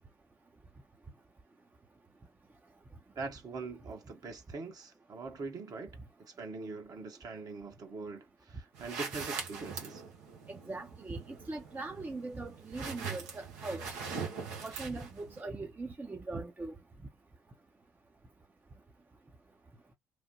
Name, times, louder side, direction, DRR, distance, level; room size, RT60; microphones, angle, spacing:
voice 1, 3.2-10.0, right 4 dB, 45° right, 1.1 m, -43 dB
sound 1, 8.7-15.4, right 5 dB, 75° right, 1.0 m, -42 dB
voice 2, 10.5-13.8 14.6-16.7, right 3 dB, 20° right, 0.7 m, -40 dB
3.2 x 2.1 x 2.8 m
hypercardioid pair, 55°, 9 cm